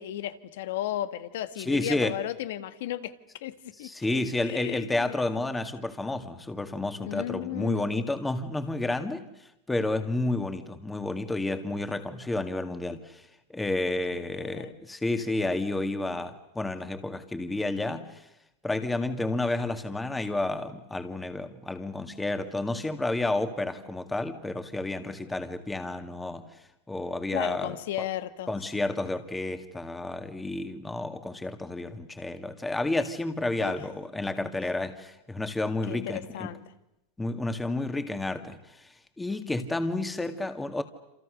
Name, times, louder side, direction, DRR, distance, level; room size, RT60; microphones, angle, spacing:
voice 1, 0.0-3.1 3.4-4.2 4.4-5.2 7.0-8.0 14.1-14.8 27.3-28.5 33.6-33.7 35.9-36.6, left 13 dB, 75° left, 12 dB, 1.7 m, -35 dB
voice 2, 1.6-2.2 3.8-13.3 13.5-18.2 18.6-26.5 26.9-28.1 28.5-36.5 37.2-40.8, left 2 dB, 10° left, 7 dB, 2.2 m, -31 dB
28.0 x 27.5 x 6.6 m, 0.88 s
supercardioid pair, 120°, 0 cm